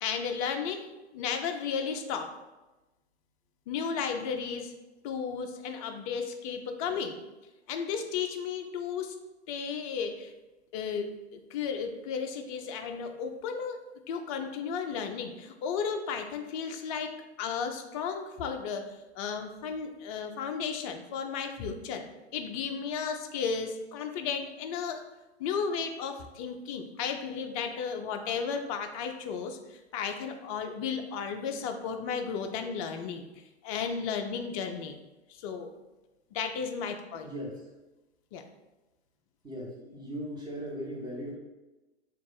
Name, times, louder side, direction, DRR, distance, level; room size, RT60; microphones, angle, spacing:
voice 1, 0.0-0.9 1.1-2.3 3.7-4.7 5.0-7.2 7.7-9.2 9.5-10.3 10.7-13.8 14.1-17.1 17.4-22.0 22.3-25.0 25.4-35.0 35.3-35.7 36.3-37.3 38.3-38.4, left 6 dB, 35° left, 5 dB, 0.4 m, -34 dB
voice 2, 37.2-37.6 39.4-41.4, equal, 10° right, -4 dB, 1.2 m, -38 dB
3.5 x 2.4 x 3.9 m, 1.0 s
figure-of-eight pair, 105°, 33 cm